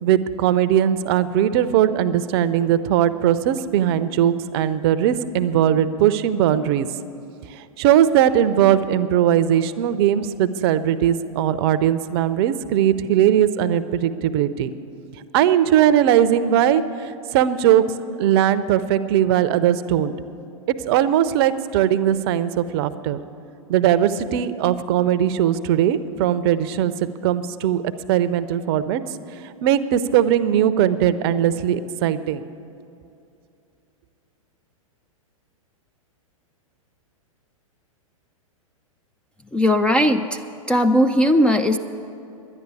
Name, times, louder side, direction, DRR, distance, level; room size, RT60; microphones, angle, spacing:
voice 1, 0.0-6.9 7.5-14.7 15.3-17.8 18.2-20.1 20.8-23.2 23.7-26.9 27.2-27.8 28.1-29.0 29.4-32.4, right 10 dB, 45° right, 14 dB, 0.6 m, -19 dB
voice 2, 39.5-40.4 40.7-41.8, equal, 5° left, 6 dB, 0.3 m, -18 dB
11.0 x 10.5 x 8.3 m, 2.6 s
hypercardioid pair, 110°, 18 cm